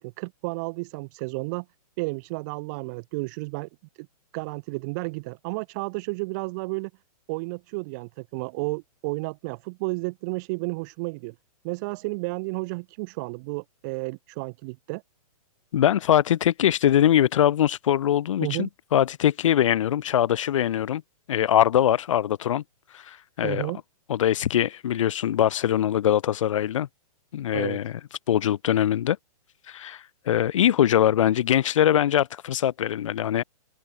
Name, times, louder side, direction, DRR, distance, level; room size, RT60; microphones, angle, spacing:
voice 1, 0.0-1.7 2.0-3.7 4.0-4.1 4.3-6.9 7.3-11.3 11.6-15.0 18.4-18.7 23.4-23.8 27.5-27.8, right 28 dB, 30° right, 2.4 m, -32 dB
voice 2, 15.7-21.0 21.3-22.6 22.9-23.6 24.1-26.9 27.3-27.9 28.3-29.2 29.7-33.4, left 11 dB, 55° left, 1.9 m, -22 dB
open air
hypercardioid pair, 165°, 20 cm